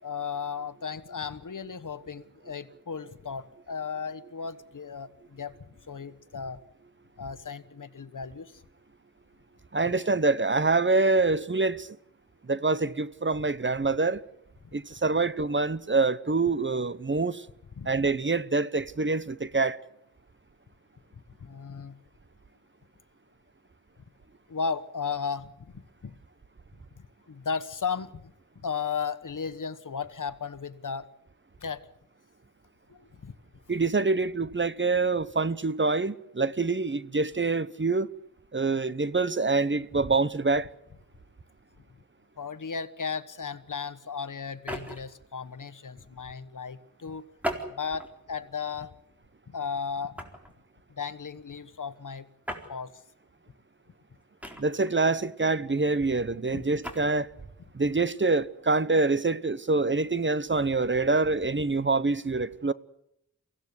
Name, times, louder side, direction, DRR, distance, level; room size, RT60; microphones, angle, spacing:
voice 1, 0.0-5.6 5.9-6.6 7.2-8.6 9.9-10.0 17.8-17.9 21.4-22.0 24.5-26.2 27.3-31.1 31.6-31.9 32.9-33.3 42.4-47.3 47.7-48.9 49.5-50.2 50.9-52.3 52.7-52.9 56.5-56.6, left 6 dB, 70° left, 1.3 m, -35 dB
voice 2, 9.7-11.9 12.5-14.2 14.7-17.5 17.8-19.8 33.7-38.1 38.5-40.7 54.6-57.3 57.7-62.7, right 3 dB, 35° right, 0.9 m, -26 dB
sound 1, 44.5-45.2 47.4-48.2 48.8-49.0 50.2-50.5 52.4-52.7 54.4-55.0 56.6-57.0, equal, 5° right, 4.2 m, -36 dB
23.5 x 16.5 x 9.6 m
wide cardioid pair, 55°, 32 cm